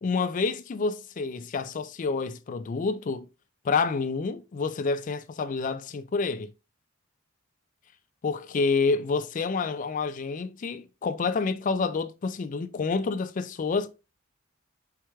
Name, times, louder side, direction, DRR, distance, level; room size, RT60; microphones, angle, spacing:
voice 1, 0.0-3.3 3.6-6.5 8.2-13.9, left 4 dB, 40° left, 0.3 m, -28 dB
4.6 x 4.4 x 2.3 m
head